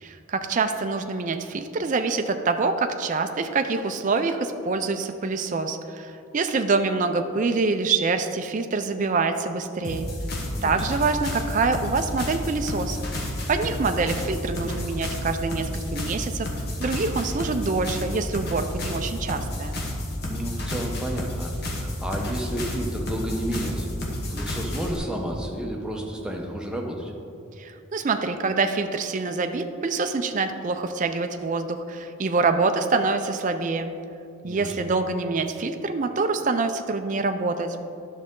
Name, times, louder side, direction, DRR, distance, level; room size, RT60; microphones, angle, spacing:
voice 1, 0.0-10.1 10.6-16.5 16.8-19.8 27.6-33.9 34.4-37.8, right 4 dB, 35° right, 7 dB, 0.4 m, -26 dB
sound 1, 9.8-25.0, left 1 dB, 45° left, 1.2 m, -31 dB
voice 2, 20.2-23.9 24.3-27.1 34.4-34.7, right 1 dB, 5° right, 0 dB, 0.8 m, -31 dB
11.0 x 6.3 x 3.7 m, 2.7 s
head